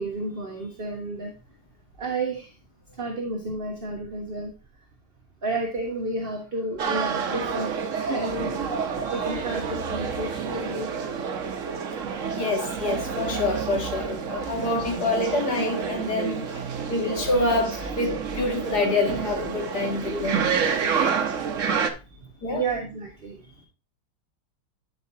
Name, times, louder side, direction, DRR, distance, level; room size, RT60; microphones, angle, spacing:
voice 1, 0.0-1.3 2.0-2.5 2.9-4.5 5.4-11.1 22.0-23.7, right 2 dB, 35° right, 1.5 m, -32 dB
sound 1, 6.8-21.9, right 6 dB, 55° right, 1.2 m, -29 dB
voice 2, 12.3-20.4 22.4-22.6, left 2 dB, 80° left, 2.7 m, -26 dB
11.5 x 5.9 x 2.8 m
omnidirectional pair, 1.7 m